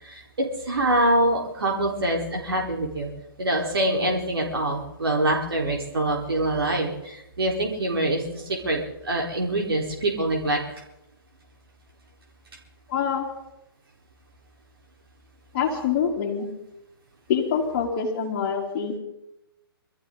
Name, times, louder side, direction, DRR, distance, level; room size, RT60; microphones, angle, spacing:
voice 1, 0.0-3.1 3.4-10.8, right 1 dB, 75° right, 0 dB, 4.2 m, -25 dB
voice 2, 12.9-13.3 15.5-16.5 17.3-19.0, left 7 dB, 35° left, -2 dB, 3.8 m, -25 dB
24.5 x 14.0 x 4.0 m, 0.87 s
figure-of-eight pair, 135°, 13 cm